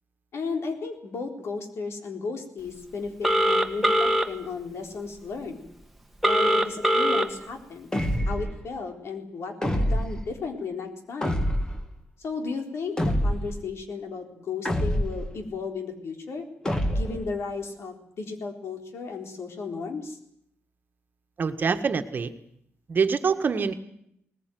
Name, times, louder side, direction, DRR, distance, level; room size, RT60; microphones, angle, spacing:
voice 1, 0.3-5.6 6.2-7.9 8.3-11.4 12.2-16.4 16.9-20.2, left 4 dB, 75° left, 4 dB, 4.0 m, -34 dB
Telephone, 3.2-4.3 6.2-7.2, right 1 dB, ahead, 1.7 m, -21 dB
sound 1, 7.9-8.6 9.6-10.2 11.2-11.9 13.0-13.6 14.6-15.3 16.6-17.3, equal, 15° left, 1.8 m, -26 dB
voice 2, 21.4-22.3 22.9-23.7, right 5 dB, 45° right, 8 dB, 1.6 m, -25 dB
21.0 x 20.0 x 9.4 m, 0.72 s
wide cardioid pair, 160°, 4 cm